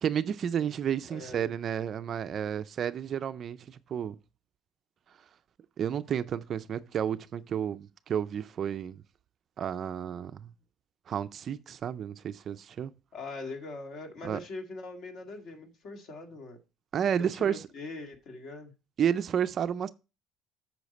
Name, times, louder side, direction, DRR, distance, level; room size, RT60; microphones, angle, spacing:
voice 1, 0.0-4.2 5.8-9.0 9.6-10.5 11.1-12.9 14.2-14.4 16.9-17.7 19.0-19.9, right 8 dB, 35° right, 0.4 m, -31 dB
voice 2, 1.1-1.5 13.1-16.6 17.2-18.7, left 3 dB, 45° left, 1.8 m, -42 dB
8.4 x 6.3 x 4.1 m
cardioid pair, 160°, 0 cm